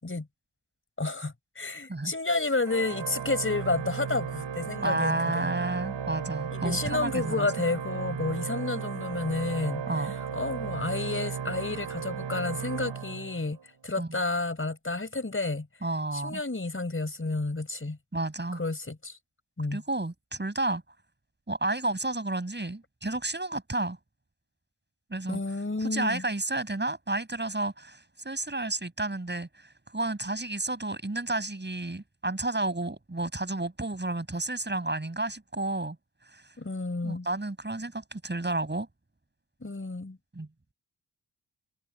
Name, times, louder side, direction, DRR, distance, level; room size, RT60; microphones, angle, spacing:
voice 1, 1.0-5.5 6.5-9.8 10.3-13.6 13.8-15.7 16.1-18.0 18.5-19.2 19.6-19.8 25.3-26.2 36.6-37.3 39.6-40.2, left 3 dB, 30° left, 5.1 m, -31 dB
Organ, 2.6-13.8, right 7 dB, 85° right, 7.5 m, -35 dB
voice 2, 4.8-7.5 9.9-10.1 14.0-14.1 15.8-16.4 18.1-18.6 19.7-20.8 21.5-24.0 25.1-25.4 25.8-36.0 36.3-36.4 37.0-38.9 40.3-40.5, right 2 dB, 25° right, 6.8 m, -31 dB
cardioid pair, 65°, 42 cm